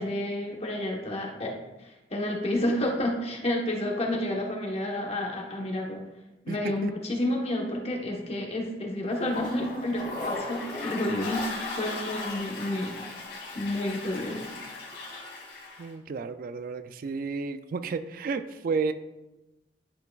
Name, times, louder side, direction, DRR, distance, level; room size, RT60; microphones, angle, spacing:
voice 1, 0.0-6.0 6.4-11.5 11.8-12.9 13.5-14.5, left 1 dB, 35° left, 0 dB, 1.2 m, -30 dB
voice 2, 6.5-6.9 15.8-18.9, right 4 dB, 50° right, 11 dB, 0.3 m, -32 dB
Toilet flush, 9.1-15.9, left 2 dB, 70° left, 2.0 m, -37 dB
11.0 x 4.7 x 2.4 m, 1.0 s
head